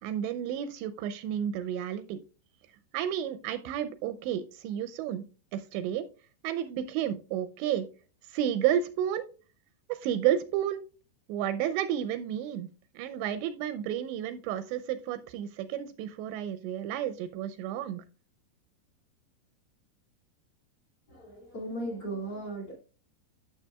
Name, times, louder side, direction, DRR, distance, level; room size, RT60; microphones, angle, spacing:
voice 1, 0.0-2.2 2.9-5.2 5.5-6.1 6.4-7.9 8.3-9.3 9.9-10.8 11.3-12.7 12.9-18.0, right 10 dB, 80° right, 11 dB, 2.7 m, -31 dB
voice 2, 21.1-22.8, right 1 dB, 35° left, 0 dB, 2.5 m, -37 dB
12.0 x 7.2 x 2.2 m, 0.34 s
omnidirectional pair, 5.3 m